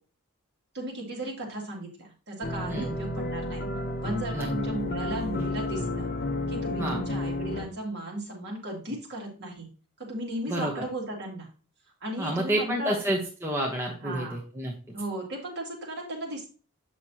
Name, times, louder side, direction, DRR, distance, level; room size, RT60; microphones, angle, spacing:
voice 1, 0.7-3.6 4.0-6.1 6.5-9.7 10.0-11.5 12.0-13.0 14.0-14.4 14.9-16.5, right 1 dB, 50° right, -1 dB, 2.4 m, -36 dB
sound 1, 2.4-7.7, left 2 dB, 40° left, 0.9 m, -31 dB
voice 2, 12.2-14.7, right 1 dB, 10° right, -2 dB, 1.0 m, -29 dB
8.0 x 6.1 x 2.9 m, 0.37 s
head